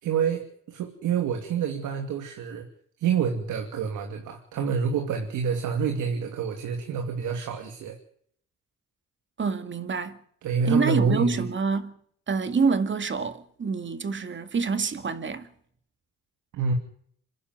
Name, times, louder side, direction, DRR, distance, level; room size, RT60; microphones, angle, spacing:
voice 1, 0.0-0.4 0.7-2.7 3.0-8.0 10.4-11.4 16.5-16.7, right 6 dB, 80° right, 2.8 m, -27 dB
voice 2, 9.4-10.2 10.7-11.9 12.3-15.5, right 5 dB, 40° right, 2.1 m, -26 dB
26.5 x 11.0 x 9.3 m
cardioid pair, 90°, 30 cm